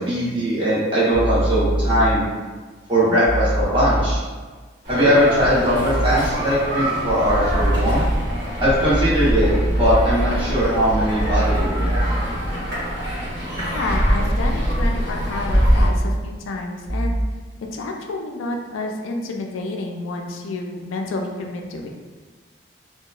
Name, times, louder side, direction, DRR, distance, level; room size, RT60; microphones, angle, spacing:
voice 1, 0.0-2.2 2.9-4.2 4.9-8.0 8.6-12.1, equal, 25° right, -10 dB, 0.9 m, -20 dB
sound 1, 1.1-2.1 3.2-4.2 5.8-6.2 7.5-8.1 8.9-10.1 11.2-12.2 13.8-14.2 15.5-16.1 16.9-17.2, right 1 dB, 15° left, 0.5 m, -23 dB
sound 2, 4.8-15.9, equal, 40° right, 1.4 m, -24 dB
voice 2, 13.7-17.2 17.7-21.9, left 2 dB, 85° left, 2 dB, 0.3 m, -29 dB
2.8 x 2.1 x 2.3 m, 1.4 s
head